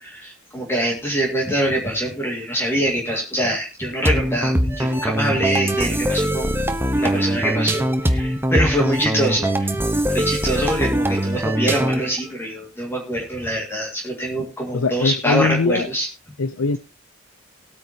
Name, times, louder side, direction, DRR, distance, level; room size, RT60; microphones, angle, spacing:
voice 1, 0.0-6.5 7.0-9.7 10.1-16.1, right 1 dB, 10° left, 0 dB, 2.2 m, -24 dB
sound 1, 4.1-12.2, right 1 dB, 10° right, 1.1 m, -22 dB
voice 2, 14.7-15.9 16.4-16.8, left 3 dB, 75° left, 12 dB, 0.7 m, -21 dB
19.5 x 9.1 x 2.9 m, 0.27 s
head